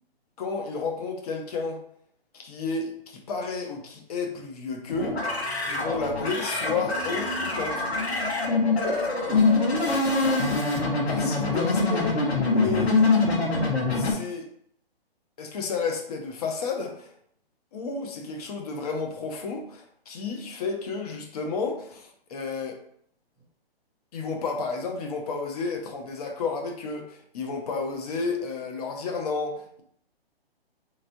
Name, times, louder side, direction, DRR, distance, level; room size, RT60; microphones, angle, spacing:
voice 1, 0.4-1.8 2.3-5.2 5.7-7.9 11.1-12.1 12.5-12.9 13.9-14.5 15.4-17.1 17.7-22.8 24.1-29.8, left 4 dB, 40° left, 2 dB, 0.8 m, -31 dB
sound 1, 4.9-14.1, left 3 dB, 85° left, 1.2 m, -24 dB
voice 2, 8.8-10.0 12.5-12.7, right 2 dB, 5° right, -7 dB, 0.5 m, -35 dB
4.2 x 3.0 x 2.6 m, 0.67 s
hypercardioid pair, 140°, 31 cm